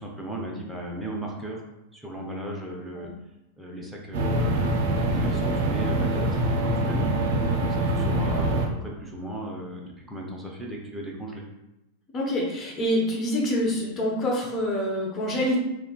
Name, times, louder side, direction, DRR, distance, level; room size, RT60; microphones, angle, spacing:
voice 1, 0.0-1.6 1.9-3.1 3.6-7.1 7.6-11.4, right 1 dB, 5° right, -2 dB, 0.7 m, -36 dB
sound 1, 4.1-8.7, right 1 dB, 50° right, 0.5 m, -24 dB
voice 2, 12.1-15.6, equal, 25° left, -2 dB, 0.8 m, -26 dB
3.5 x 2.9 x 2.2 m, 0.92 s
figure-of-eight pair, 90°, 0 cm